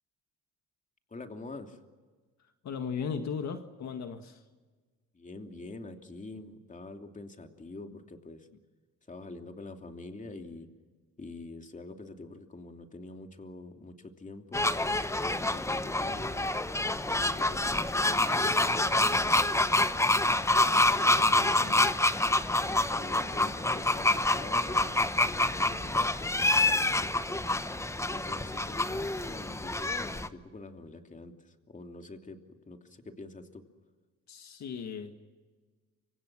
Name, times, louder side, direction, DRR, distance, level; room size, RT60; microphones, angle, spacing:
voice 1, 1.1-1.8 5.1-8.5 9.1-10.7 11.2-14.6 15.2-16.6 17.0-19.7 21.0-21.7 22.9-27.5 28.1-33.6, left 2 dB, 25° left, 4 dB, 2.9 m, -45 dB
voice 2, 2.6-4.4 7.8-8.0 21.0-21.9 34.3-35.1, left 6 dB, 65° left, 6 dB, 1.9 m, -37 dB
sound 1, 14.5-30.3, left 2 dB, 10° left, 1.0 m, -27 dB
29.5 x 25.5 x 6.2 m, 1.4 s
cardioid pair, 90°, 30 cm